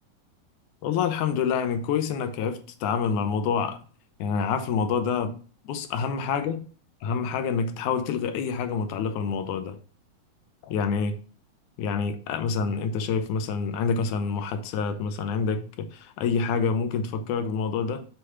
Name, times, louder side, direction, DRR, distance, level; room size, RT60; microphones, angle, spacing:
voice 1, 0.8-3.8 4.2-5.4 5.7-6.6 7.0-9.8 10.6-11.2 11.8-18.1, left 6 dB, 85° left, 2.2 m, -27 dB
6.7 x 3.3 x 5.5 m
omnidirectional pair, 3.4 m